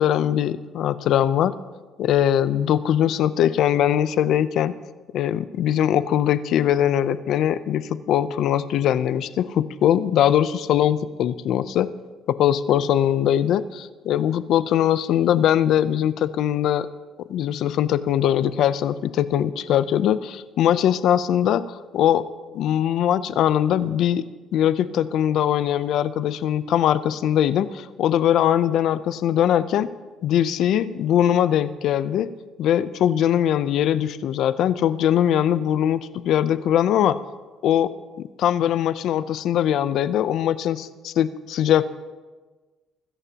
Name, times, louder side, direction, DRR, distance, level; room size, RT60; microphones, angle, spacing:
voice 1, 0.0-1.5 2.0-4.7 5.1-11.9 12.3-16.9 17.3-22.2 22.5-24.2 24.5-29.9 30.2-32.3 32.6-37.2 37.6-37.9 38.4-41.9, left 10 dB, 65° left, 14 dB, 0.6 m, -21 dB
24.5 x 14.0 x 2.9 m, 1.3 s
cardioid pair, 120°, 0 cm